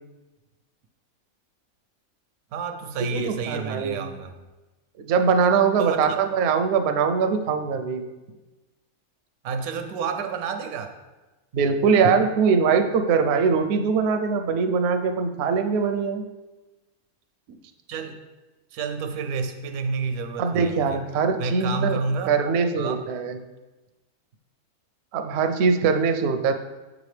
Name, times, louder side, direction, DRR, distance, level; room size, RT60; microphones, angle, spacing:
voice 1, 2.5-4.3 5.8-6.2 9.4-11.0 17.5-17.6 17.9-18.2 18.7-21.0 21.4-22.4 22.8-23.0, right 4 dB, 85° right, 7 dB, 1.1 m, -30 dB
voice 2, 3.1-4.1 5.0-8.0 11.5-16.2 20.4-22.0 22.3-23.4 25.1-26.5, right 5 dB, 65° right, 7 dB, 0.7 m, -22 dB
7.0 x 5.0 x 3.3 m, 1.1 s
omnidirectional pair, 1.5 m